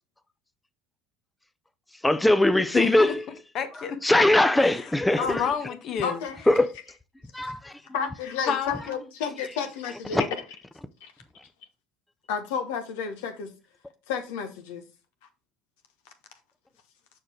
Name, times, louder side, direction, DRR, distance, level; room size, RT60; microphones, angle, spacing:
voice 1, 2.0-3.2 4.0-5.4 6.5-6.7 7.3-7.7 10.1-10.2, left 1 dB, 10° left, 0.6 m, -20 dB
voice 2, 2.7-3.2 3.5-4.2 4.8-6.2 8.5-8.7, left 7 dB, 55° left, 1.2 m, -30 dB
voice 3, 6.0-6.4 7.4-7.5 7.9-10.4 11.0-11.1 12.3-13.5 14.1-14.8, left 6 dB, 75° left, 1.2 m, -31 dB
6.5 x 5.0 x 4.5 m
hypercardioid pair, 75°, 0 cm